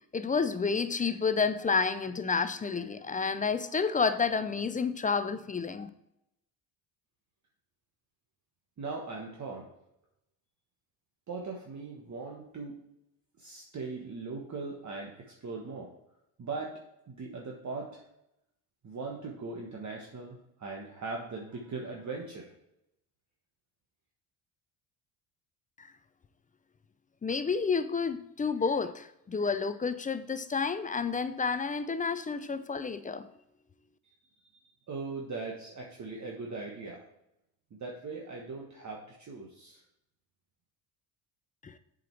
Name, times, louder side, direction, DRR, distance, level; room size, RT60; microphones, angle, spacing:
voice 1, 0.1-5.9 25.8-25.9 27.2-33.2 41.6-41.8, left 5 dB, 15° left, 12 dB, 0.4 m, -30 dB
voice 2, 8.8-9.7 11.3-12.8 13.4-15.9 16.4-16.7 17.1-18.0 18.8-22.5 34.2-37.0 37.7-39.8, right 3 dB, 35° right, -1 dB, 1.4 m, -40 dB
7.6 x 5.2 x 4.5 m, 0.84 s
supercardioid pair, 80°, 49 cm